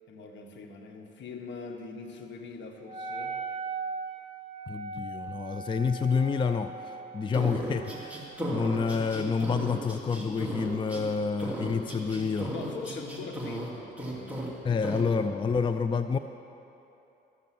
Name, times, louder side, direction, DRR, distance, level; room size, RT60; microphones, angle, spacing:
voice 1, 0.1-3.4 12.5-14.4 14.7-15.1, left 4 dB, 65° left, 3 dB, 1.5 m, -42 dB
Wind instrument woodwind instrument, 2.8-8.6, right 4 dB, 30° right, 0.7 m, -39 dB
voice 2, 4.7-12.5 14.6-16.2, left 5 dB, 25° left, 9 dB, 0.4 m, -28 dB
sound 1, 7.3-11.0 11.4-13.7 14.0-14.5 14.8-15.0, right 1 dB, 5° right, 2.3 m, -35 dB
13.0 x 6.8 x 7.6 m, 2.9 s
cardioid pair, 90°, 20 cm